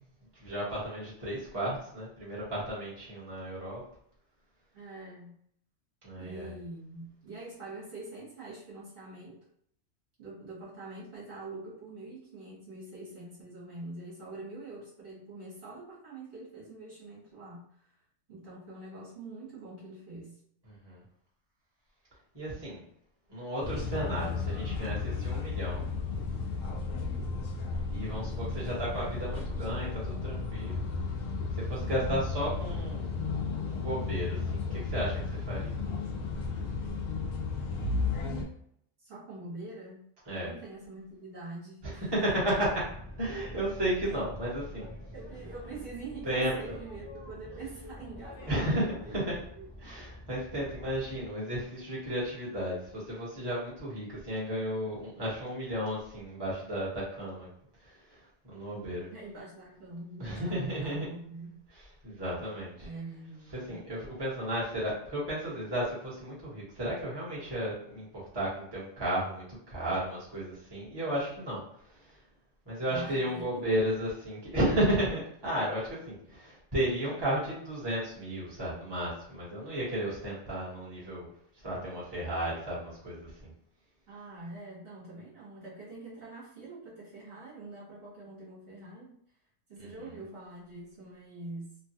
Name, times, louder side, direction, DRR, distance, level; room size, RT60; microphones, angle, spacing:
voice 1, 0.4-3.8 6.0-6.5 20.8-21.0 22.3-22.8 23.3-25.8 27.9-30.8 31.5-33.3 33.6-35.8 40.3-40.5 41.8-42.8 43.2-44.9 46.2-46.5 48.5-49.4 49.8-57.5 57.8-59.1 60.2-61.1 62.0-62.9 63.5-72.2 72.7-81.3 81.6-83.5 89.8-89.9, right 1 dB, 20° right, -7 dB, 1.1 m, -33 dB
voice 2, 4.7-5.3 6.1-9.4 10.2-17.8 18.3-20.4 31.8-32.3 39.0-40.0 40.3-42.1 45.1-49.2 49.6-49.9 59.1-61.6 62.8-63.8 72.8-73.8 84.1-89.2 89.7-91.8, right 2 dB, 55° right, -7 dB, 1.3 m, -44 dB
sound 1, 23.6-38.4, left 4 dB, 85° left, 1.0 m, -33 dB
Boat Water vehicle, 42.5-51.3, left 1 dB, 35° left, 0.5 m, -46 dB
3.0 x 2.3 x 2.8 m, 0.67 s
omnidirectional pair, 1.3 m